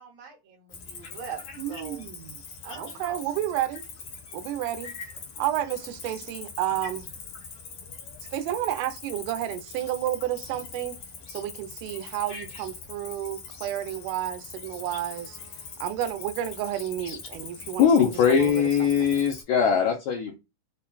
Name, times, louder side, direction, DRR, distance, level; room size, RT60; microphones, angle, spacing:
voice 1, 0.0-1.4 1.7-2.0 2.6-3.2, right 7 dB, 60° right, 1.9 m, -41 dB
Cricket, 0.7-19.4, left 5 dB, 65° left, 1.4 m, -43 dB
voice 2, 1.6-2.4 2.7-3.8 4.3-4.9 5.4-7.1 8.3-11.0 11.3-15.4 15.8-19.1, right 12 dB, 80° right, 2.0 m, -31 dB
voice 3, 17.8-20.4, left 7 dB, 80° left, 1.7 m, -21 dB
5.6 x 2.2 x 2.2 m
omnidirectional pair, 4.0 m